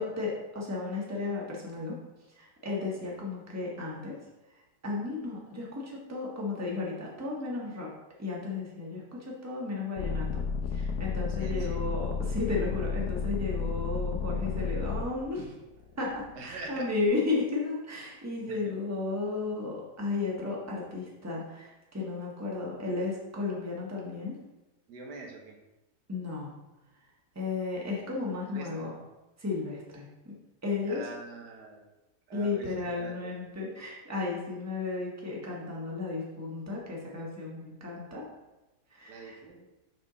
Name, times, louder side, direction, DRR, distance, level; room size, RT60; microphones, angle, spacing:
voice 1, 0.0-1.9 2.3-4.2 4.8-7.9 8.2-10.4 10.7-15.5 16.0-24.4 26.1-26.5 27.3-29.0 29.4-30.3 30.6-31.1 32.3-38.2 38.9-39.4, left 3 dB, 10° right, -3 dB, 1.3 m, -34 dB
sound 1, 10.0-15.0 15.7-16.4, left 5 dB, 75° left, 1.2 m, -32 dB
voice 2, 11.4-11.8 16.3-16.9 18.5-18.6 24.9-25.6 28.4-28.7 30.9-31.9 32.3-33.3 39.1-39.6, right 3 dB, 80° right, 1 dB, 1.6 m, -44 dB
6.1 x 5.5 x 3.9 m, 1.0 s
omnidirectional pair, 1.8 m